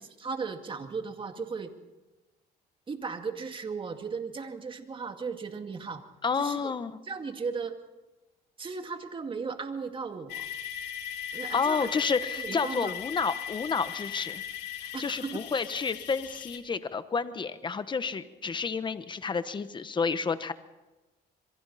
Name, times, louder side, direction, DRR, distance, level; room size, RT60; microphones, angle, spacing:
voice 1, 0.2-1.7 2.9-6.0 6.4-6.7 7.1-7.8 8.6-10.5 11.3-11.9 12.4-12.9 14.9-15.4, right 5 dB, 30° right, 6 dB, 2.2 m, -36 dB
voice 2, 6.2-7.0 11.5-14.4 14.8-20.5, left 5 dB, 25° left, 12 dB, 1.2 m, -30 dB
sound 1, 10.3-16.6, left 10 dB, 85° left, 2.2 m, -38 dB
27.0 x 23.0 x 4.2 m, 1.1 s
cardioid pair, 110°, 17 cm